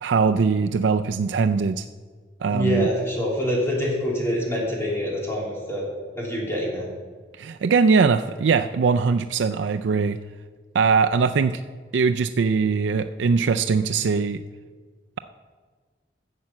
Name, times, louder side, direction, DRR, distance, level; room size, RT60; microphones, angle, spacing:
voice 1, 0.0-1.9 2.4-2.9 7.4-10.2 10.7-11.6 11.9-14.4, right 5 dB, 85° right, 8 dB, 0.4 m, -21 dB
voice 2, 2.5-5.8 6.1-6.9, equal, 15° left, -4 dB, 3.3 m, -25 dB
12.0 x 7.6 x 7.2 m, 1.5 s
head